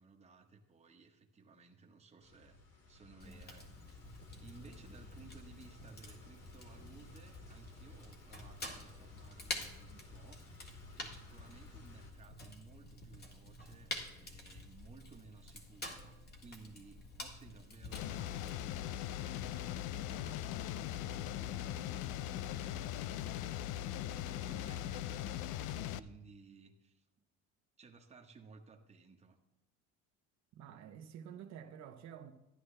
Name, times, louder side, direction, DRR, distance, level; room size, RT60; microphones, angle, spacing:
voice 1, 0.0-2.6 2.9-3.7 4.4-23.4 24.0-27.2 27.8-29.4, right 4 dB, 20° right, 1.2 m, -59 dB
sound 1, 2.2-12.1, left 2 dB, 55° left, 2.6 m, -56 dB
Fire, 3.2-18.5, left 2 dB, 30° left, 1.8 m, -49 dB
sound 2, 17.9-26.0, left 11 dB, 70° left, 0.5 m, -40 dB
voice 2, 30.6-32.3, right 8 dB, 60° right, 1.0 m, -50 dB
13.5 x 10.5 x 3.4 m
cardioid pair, 125°, 31 cm